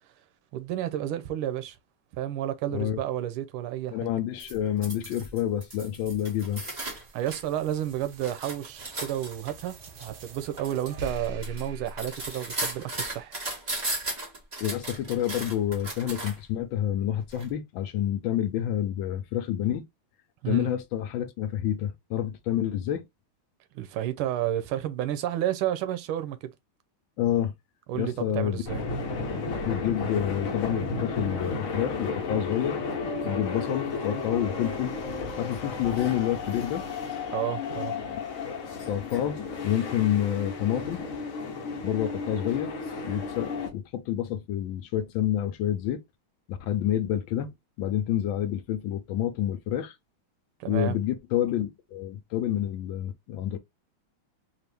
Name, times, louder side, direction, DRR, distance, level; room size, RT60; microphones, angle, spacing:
voice 1, 0.5-1.8 2.2-4.1 7.1-13.4 20.4-20.7 23.7-26.5 27.9-28.8 37.3-37.9 50.6-51.0, right 12 dB, 90° right, 1.5 m, -31 dB
voice 2, 3.9-6.6 14.6-19.8 20.5-23.0 27.2-27.5 27.9-28.6 29.6-32.8 33.2-34.9 35.4-36.8 38.1-38.6 38.9-41.0 41.8-42.7 43.0-46.0 46.5-47.5 47.8-49.9 50.7-53.6, left 11 dB, 75° left, 1.3 m, -28 dB
sound 1, 4.4-7.4 7.8-16.5 17.3-17.4, right 2 dB, 25° right, 1.0 m, -36 dB
sound 2, 4.6-13.1, equal, 70° right, 1.5 m, -46 dB
sound 3, 28.6-43.7, left 4 dB, 50° left, 1.0 m, -33 dB
4.2 x 2.5 x 3.4 m
omnidirectional pair, 2.3 m